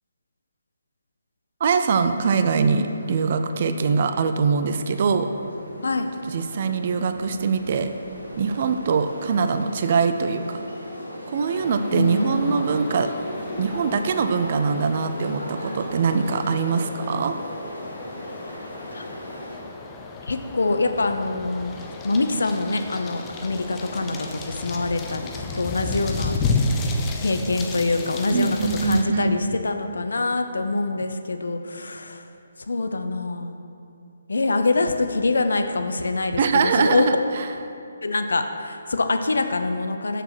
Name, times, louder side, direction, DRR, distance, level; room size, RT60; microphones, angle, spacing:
voice 1, 1.6-5.3 6.3-7.9 8.4-10.6 11.3-13.1 13.6-17.3 28.3-29.4 36.4-37.5, right 5 dB, 40° right, 8 dB, 0.5 m, -23 dB
sound 1, 2.1-19.6, equal, 80° left, 2.1 m, -38 dB
sound 2, 11.5-29.0, left 3 dB, 15° left, 0.6 m, -33 dB
voice 2, 11.9-12.4 18.9-19.0 20.3-26.7 27.2-32.3 32.7-33.6 34.3-37.1 38.0-40.2, left 3 dB, 60° left, 7 dB, 0.6 m, -25 dB
6.8 x 6.6 x 5.9 m, 2.6 s
figure-of-eight pair, 140°, 0 cm